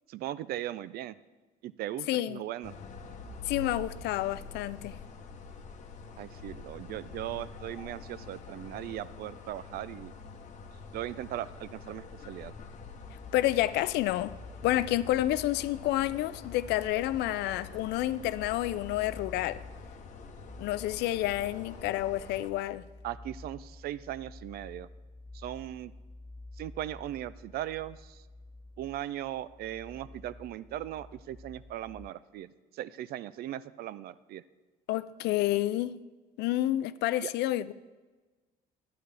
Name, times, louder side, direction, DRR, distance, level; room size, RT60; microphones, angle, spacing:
voice 1, 0.1-1.2 1.6-2.7 6.2-10.1 10.9-12.5 23.0-24.9 25.3-25.9 26.6-28.2 28.8-34.4 37.2-37.3, right 13 dB, 65° right, 0.4 m, -38 dB
voice 2, 2.1-2.5 3.5-5.0 13.3-14.4 14.6-19.6 20.6-22.8 34.9-36.0 36.4-37.7, left 14 dB, 80° left, 0.4 m, -29 dB
sound 1, 2.6-22.5, left 4 dB, 45° left, 0.9 m, -46 dB
sound 2, 12.8-32.1, left 2 dB, 15° left, 0.3 m, -50 dB
12.0 x 9.5 x 3.3 m
cardioid pair, 110°, 17 cm